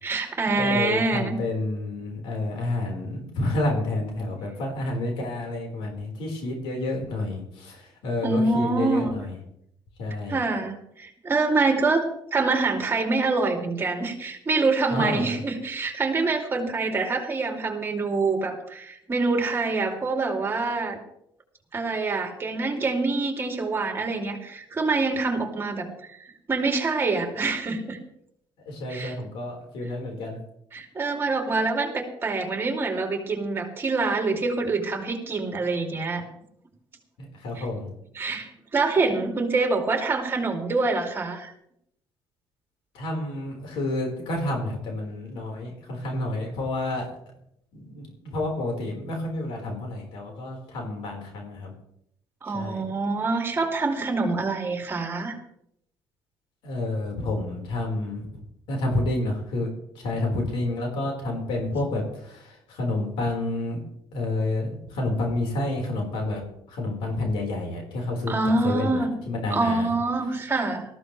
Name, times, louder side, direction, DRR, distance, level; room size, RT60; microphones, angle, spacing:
voice 1, 0.0-1.4 8.2-9.1 10.3-12.0 12.3-21.0 21.7-28.0 28.9-29.1 30.7-36.2 38.1-41.5 52.4-55.4 68.3-69.2 69.5-70.8, right 3 dB, 25° right, 2 dB, 2.7 m, -25 dB
voice 2, 0.6-9.4 10.0-10.4 14.9-15.4 28.7-30.4 37.2-37.9 42.9-47.1 47.7-51.7 52.5-52.9 56.6-58.3 58.7-63.8 64.1-66.4 66.7-68.4 68.6-69.9, left 2 dB, 80° left, 1 dB, 4.5 m, -29 dB
19.5 x 14.0 x 3.3 m, 0.73 s
cardioid pair, 130°, 9 cm